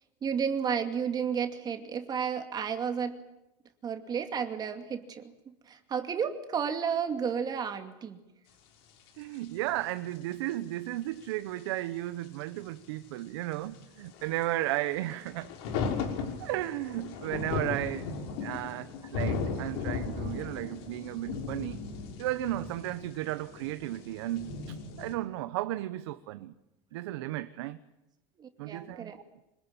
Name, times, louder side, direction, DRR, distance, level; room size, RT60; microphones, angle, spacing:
voice 1, 0.2-3.2 3.8-5.2 5.7-8.2 28.4-29.2, right 7 dB, 30° right, 2.5 m, -32 dB
sound 1, 9.1-9.2 9.3-9.5 9.9-10.5 11.2-11.3 11.6-11.7 12.2-12.5 13.2-25.1, left 5 dB, 75° left, 5.7 m, -36 dB
voice 2, 9.2-15.5 16.4-18.1 18.4-21.8 22.2-26.5 26.9-27.8 28.6-29.1, right 15 dB, 85° right, 1.1 m, -34 dB
26.0 x 20.5 x 8.9 m
supercardioid pair, 130°, 13 cm